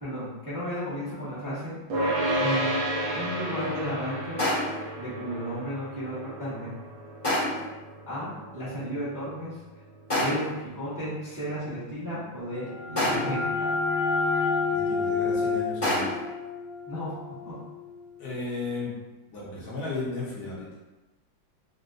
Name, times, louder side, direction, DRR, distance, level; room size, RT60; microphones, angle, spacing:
voice 1, 0.0-1.7 2.4-2.8 3.1-4.4 5.0-6.7 8.1-9.6 10.1-13.7 16.9-17.2 17.4-17.6, equal, 20° right, -10 dB, 0.5 m, -34 dB
sound 1, 1.9-13.2, right 1 dB, 80° right, 1.5 m, -33 dB
sound 2, 4.4-4.9 7.2-7.8 10.1-10.7 13.0-13.5 15.8-16.3, left 1 dB, 35° left, 0.6 m, -27 dB
sound 3, 12.5-18.0, left 4 dB, 50° right, 1.3 m, -29 dB
voice 2, 14.7-16.1 18.2-19.0 19.3-20.7, left 3 dB, 65° left, -6 dB, 1.1 m, -34 dB
4.1 x 2.2 x 2.5 m, 1.1 s
omnidirectional pair, 2.1 m